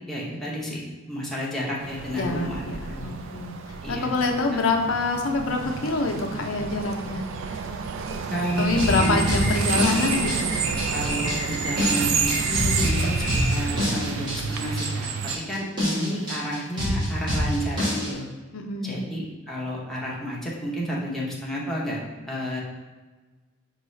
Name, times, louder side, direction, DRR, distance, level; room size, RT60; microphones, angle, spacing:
voice 1, 0.0-3.1 3.8-4.1 8.3-9.3 10.9-15.1 15.4-18.3 18.8-22.0 22.3-22.6, equal, ahead, -6 dB, 0.7 m, -31 dB
sound 1, 1.8-15.4, right 5 dB, 65° right, 0.3 m, -30 dB
voice 2, 2.1-3.5 3.9-7.6 8.6-10.5 18.5-19.0, left 3 dB, 80° left, 3 dB, 0.5 m, -26 dB
sound 2, 8.4-13.7, equal, 45° right, 0.9 m, -32 dB
sound 3, 8.8-18.1, equal, 20° right, 1.2 m, -27 dB
5.4 x 2.4 x 3.1 m, 1.3 s
head